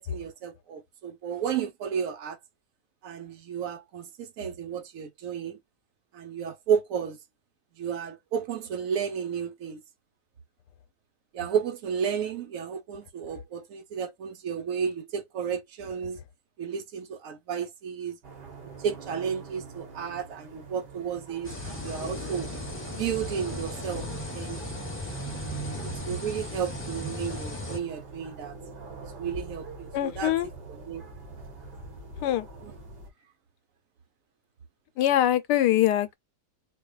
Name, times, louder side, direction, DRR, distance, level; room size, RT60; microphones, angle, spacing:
voice 1, 0.0-2.4 3.0-5.6 6.1-7.2 7.8-9.8 11.3-16.2 16.6-18.2 18.8-22.5 23.0-24.1 24.3-24.6 25.8-28.5 29.2-30.3 30.7-31.0 32.6-32.7, right 7 dB, 60° right, 1.1 m, -32 dB
sound 1, 18.2-33.1, right 3 dB, 85° right, 1.8 m, -44 dB
sound 2, 21.4-27.8, left 1 dB, 10° left, 0.6 m, -36 dB
voice 2, 29.9-30.5 32.2-32.5 35.0-36.2, left 12 dB, 90° left, 1.2 m, -23 dB
4.4 x 2.3 x 2.3 m
omnidirectional pair, 1.8 m